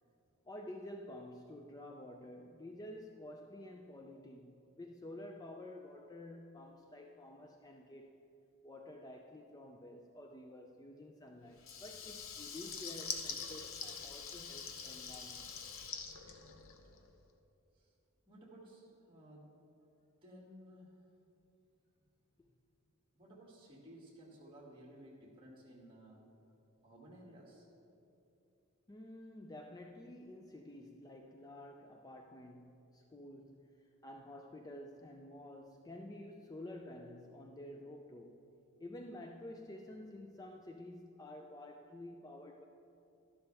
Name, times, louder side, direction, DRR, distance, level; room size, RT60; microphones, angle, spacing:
voice 1, 0.5-8.2 8.6-15.5 22.4-22.5 28.9-38.4 38.8-42.7, left 1 dB, 15° left, 3 dB, 0.4 m, -50 dB
Water tap faucet / Liquid, 11.6-17.1, left 6 dB, 65° left, 0.8 m, -45 dB
voice 2, 18.3-19.5 20.2-21.0 23.2-26.2 26.8-27.7, right 1 dB, 25° right, -5 dB, 2.2 m, -56 dB
12.5 x 11.5 x 3.4 m, 2.8 s
head